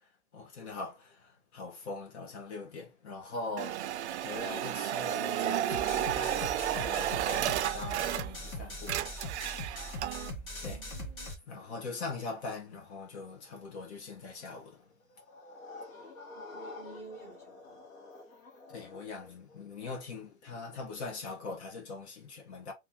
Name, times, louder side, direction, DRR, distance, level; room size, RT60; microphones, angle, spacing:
voice 1, 0.0-9.4 10.6-10.9 11.5-14.9 18.7-22.7, left 3 dB, 50° left, 1.4 m, -42 dB
sound 1, 3.6-8.5 8.8-10.3, right 11 dB, 55° right, 0.4 m, -32 dB
sound 2, 5.7-11.3, equal, 30° left, 1.4 m, -41 dB
voice 2, 10.5-11.7 16.3-17.8, right 2 dB, 5° left, 1.4 m, -51 dB
sound 3, 14.4-21.2, left 3 dB, 70° left, 1.8 m, -49 dB
3.3 x 3.0 x 3.6 m
hypercardioid pair, 145°, 42 cm